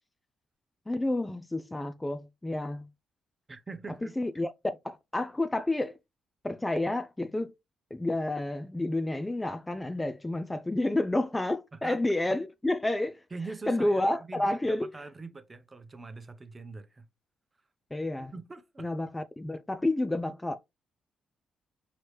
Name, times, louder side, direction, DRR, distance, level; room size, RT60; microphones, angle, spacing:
voice 1, 0.9-2.9 4.2-6.0 6.4-7.5 7.9-13.2 13.7-14.9 17.9-18.3 18.8-20.6, left 1 dB, 15° left, 0.4 m, -30 dB
voice 2, 3.5-4.2 11.7-12.0 13.3-17.1 18.3-19.0, right 3 dB, 25° right, 0.7 m, -43 dB
4.8 x 3.0 x 3.1 m
cardioid pair, 90°, 0 cm